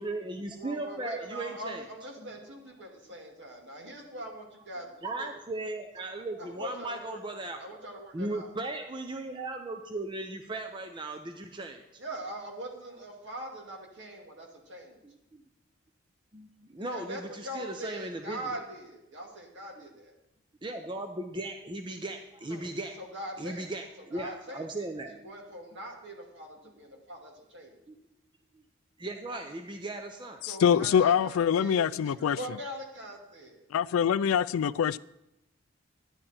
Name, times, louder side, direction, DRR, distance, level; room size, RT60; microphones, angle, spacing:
voice 1, 0.0-1.8 2.2-2.5 3.9-4.0 5.0-7.8 8.1-12.0 15.0-15.4 16.3-18.5 19.8-19.9 20.6-23.0 23.4-25.5 27.9-28.0 28.5-28.6 29.0-30.4, right 2 dB, 25° right, 5 dB, 0.6 m, -37 dB
voice 2, 0.5-4.9 5.2-5.3 6.4-7.2 7.6-8.5 12.0-15.0 16.9-20.1 22.5-22.6 23.0-23.6 24.1-24.6 25.1-27.8 30.5-31.8 32.0-33.7, right 1 dB, 60° right, 0 dB, 2.4 m, -42 dB
voice 3, 30.4-32.4 33.7-35.0, left 8 dB, 90° left, 19 dB, 0.3 m, -24 dB
12.5 x 10.0 x 4.4 m, 0.86 s
head